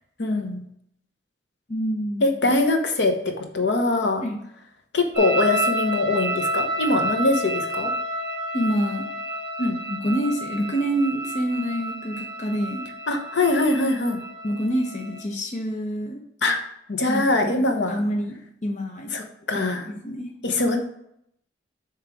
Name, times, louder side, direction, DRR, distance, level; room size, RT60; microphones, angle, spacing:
voice 1, 0.2-0.6 2.2-4.2 4.9-7.9 9.6-9.8 13.1-14.2 16.4-16.6 16.9-18.0 19.1-19.8 20.4-20.8, left 2 dB, 70° left, 5 dB, 0.9 m, -23 dB
voice 2, 1.7-2.5 4.2-4.4 8.5-9.1 9.9-12.8 14.4-16.2 17.0-17.6 17.9-18.4 18.6-19.1 19.6-20.3, equal, 40° left, 2 dB, 0.7 m, -27 dB
sound 1, 5.1-15.2, right 1 dB, 40° right, 1.7 m, -30 dB
6.9 x 3.2 x 4.8 m, 0.73 s
head